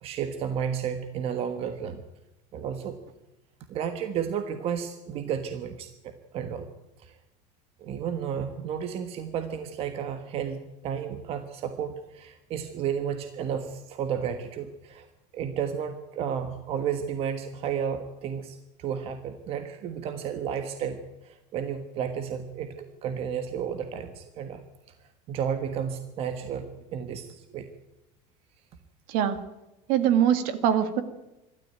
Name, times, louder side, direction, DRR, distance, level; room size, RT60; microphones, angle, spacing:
voice 1, 0.0-2.0 2.5-3.0 3.7-6.7 7.0-7.2 7.8-15.1 15.3-24.6 25.3-27.7, right 8 dB, 40° right, 8 dB, 1.4 m, -32 dB
voice 2, 29.9-31.0, right 9 dB, 60° right, 11 dB, 2.1 m, -23 dB
25.5 x 13.0 x 9.1 m, 0.95 s
cardioid pair, 170°, 16 cm